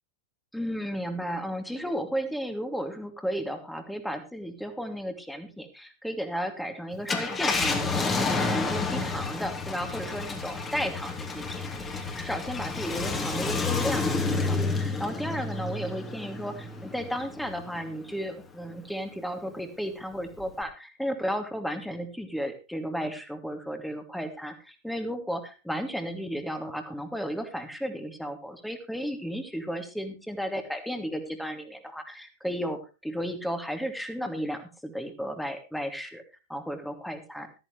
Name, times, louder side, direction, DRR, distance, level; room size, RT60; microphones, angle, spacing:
voice 1, 0.5-36.2 36.5-37.5, equal, ahead, 6 dB, 2.6 m, -34 dB
Car, 6.9-17.8 18.3-18.4 20.4-20.6, left 3 dB, 20° left, 3.0 m, -30 dB
14.5 x 14.0 x 3.2 m, 0.30 s
figure-of-eight pair, 90°, 0 cm